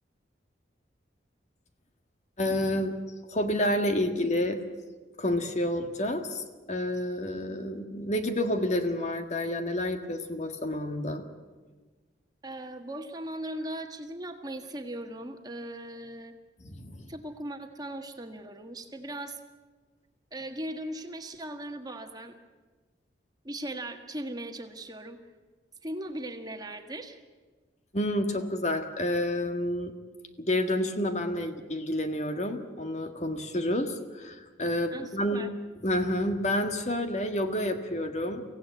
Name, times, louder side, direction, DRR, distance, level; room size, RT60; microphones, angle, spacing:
voice 1, 2.4-2.9 3.3-4.6 5.2-11.2 16.6-17.1 27.9-29.9 30.4-35.4 35.8-38.4, left 1 dB, 40° left, 7 dB, 1.7 m, -29 dB
voice 2, 12.4-16.4 17.1-19.4 20.3-22.3 23.4-25.2 25.8-27.2 34.9-35.5, right 1 dB, 20° right, 5 dB, 1.5 m, -38 dB
24.0 x 16.0 x 9.4 m, 1.3 s
head